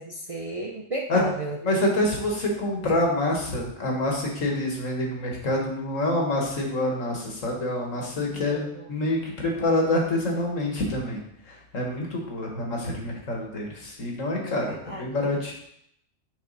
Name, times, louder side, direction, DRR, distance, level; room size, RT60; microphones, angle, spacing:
voice 1, 0.0-1.6 8.3-8.9 14.4-15.0, right 1 dB, 35° right, -1 dB, 0.6 m, -34 dB
voice 2, 1.6-11.2 11.5-15.5, left 1 dB, 75° left, 0 dB, 2.0 m, -27 dB
6.6 x 5.7 x 4.1 m, 0.72 s
omnidirectional pair, 1.4 m